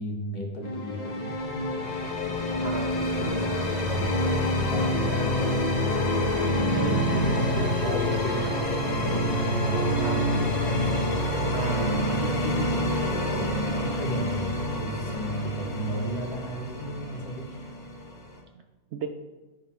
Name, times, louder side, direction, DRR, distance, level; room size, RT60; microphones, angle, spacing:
voice 1, 0.0-2.1 3.0-6.9 7.1-9.9 10.2-11.4 12.1-17.4, equal, 90° left, 1 dB, 1.9 m, -35 dB
sound 1, 0.6-18.4, left 1 dB, 30° left, 0.9 m, -27 dB
voice 2, 2.6-3.0 6.7-7.1 7.6-8.0 9.9-10.3 11.5-12.2 18.9-19.1, right 7 dB, 75° right, 5 dB, 0.6 m, -34 dB
9.8 x 4.0 x 5.5 m, 1.2 s
omnidirectional pair, 1.7 m